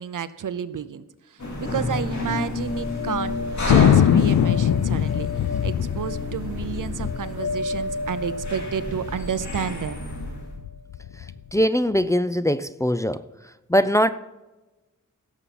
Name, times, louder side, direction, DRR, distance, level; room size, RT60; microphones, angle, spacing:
voice 1, 0.0-10.0, right 8 dB, 75° right, 14 dB, 0.7 m, -31 dB
sound 1, 1.4-10.6, left 2 dB, 60° left, 3.3 m, -32 dB
sound 2, 1.6-10.7, left 2 dB, 45° left, 1.7 m, -35 dB
Thunder, 3.7-8.5 8.8-8.9 9.1-9.6 10.1-11.3, left 10 dB, 85° left, 0.5 m, -21 dB
voice 2, 11.5-13.2 13.7-14.1, equal, 10° left, 11 dB, 0.4 m, -21 dB
16.5 x 7.1 x 4.2 m, 1.1 s
wide cardioid pair, 115°, 32 cm